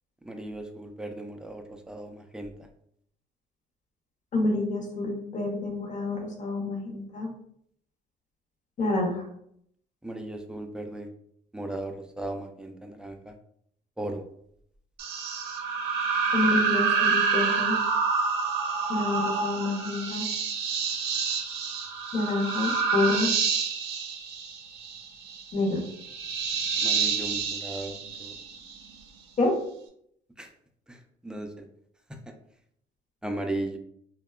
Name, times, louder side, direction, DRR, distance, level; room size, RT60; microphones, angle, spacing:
voice 1, 0.3-2.5 10.0-11.1 11.5-13.3 14.0-14.2 26.8-28.3 30.4-30.5 30.9-31.0 31.2-31.6 33.2-33.8, right 1 dB, 5° right, 4 dB, 0.3 m, -36 dB
voice 2, 4.3-7.3 8.8-9.2 16.3-17.8 18.9-20.3 22.1-23.3 25.5-25.8 29.4-29.5, left 2 dB, 45° left, 0 dB, 0.8 m, -28 dB
sound 1, 15.0-28.9, right 5 dB, 75° right, 0.5 m, -28 dB
2.7 x 2.1 x 2.3 m, 0.70 s
cardioid pair, 110°, 17 cm